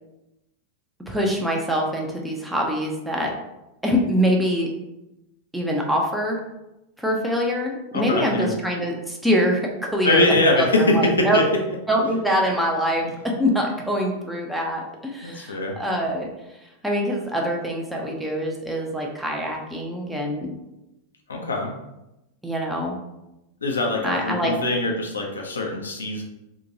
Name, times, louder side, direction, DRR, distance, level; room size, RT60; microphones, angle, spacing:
voice 1, 1.1-3.3 3.8-4.7 5.5-6.4 7.0-9.6 9.9-10.3 10.6-11.4 11.9-16.3 16.8-20.5 22.4-23.0 24.0-24.5, equal, 5° right, -1 dB, 0.5 m, -24 dB
voice 2, 7.9-8.5 10.0-11.4 13.0-13.1 15.2-15.7 21.3-21.7 23.6-26.2, left 2 dB, 70° left, 0 dB, 0.4 m, -22 dB
2.7 x 2.2 x 2.6 m, 0.92 s
figure-of-eight pair, 90°, 0 cm